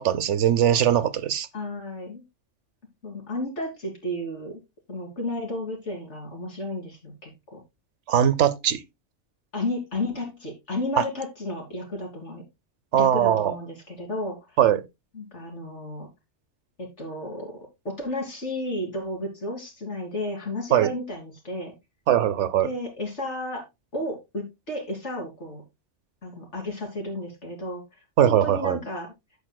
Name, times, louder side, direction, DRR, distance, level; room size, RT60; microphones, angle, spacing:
voice 1, 0.0-1.5 8.1-8.8 11.0-11.1 12.9-13.5 14.6-14.9 20.7-20.9 22.1-22.7 28.2-28.8, right 10 dB, 70° right, 1.0 m, -20 dB
voice 2, 1.5-2.2 3.0-4.6 4.9-7.6 9.5-12.4 12.9-14.4 15.1-16.1 16.8-17.6 17.8-21.7 22.6-23.6 23.9-25.6 26.2-27.8 28.2-29.1, left 1 dB, 65° left, 3.4 m, -32 dB
15.5 x 5.3 x 2.2 m
omnidirectional pair, 1.3 m